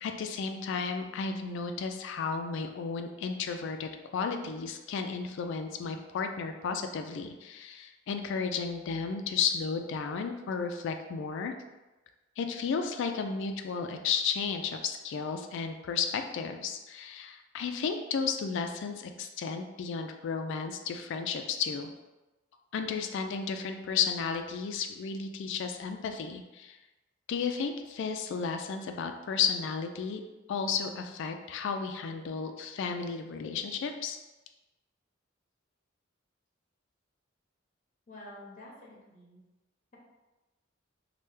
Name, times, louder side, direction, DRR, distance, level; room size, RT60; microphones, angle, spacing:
voice 1, 0.0-11.5 12.4-21.9 22.7-26.8 27.3-30.2 30.5-34.2, left 5 dB, 65° left, 6 dB, 0.3 m, -33 dB
voice 2, 38.1-39.4, left 1 dB, 40° left, -4 dB, 0.7 m, -49 dB
3.2 x 2.2 x 3.1 m, 1.1 s
head